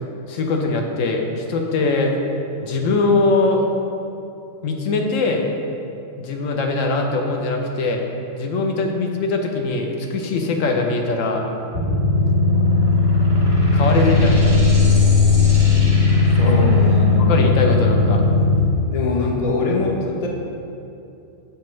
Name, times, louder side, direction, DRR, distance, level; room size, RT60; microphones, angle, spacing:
voice 1, 0.3-2.1 2.6-3.7 4.6-5.5 6.2-8.1 8.3-11.4 13.7-14.9 16.4-16.5 17.2-18.2, left 3 dB, 80° left, 2 dB, 1.0 m, -21 dB
sound 1, 11.7-18.6, left 3 dB, 35° right, 1.3 m, -16 dB
voice 2, 16.4-17.4 18.9-20.3, left 3 dB, 45° left, -1 dB, 0.5 m, -23 dB
6.8 x 4.7 x 3.1 m, 2.7 s
omnidirectional pair, 1.4 m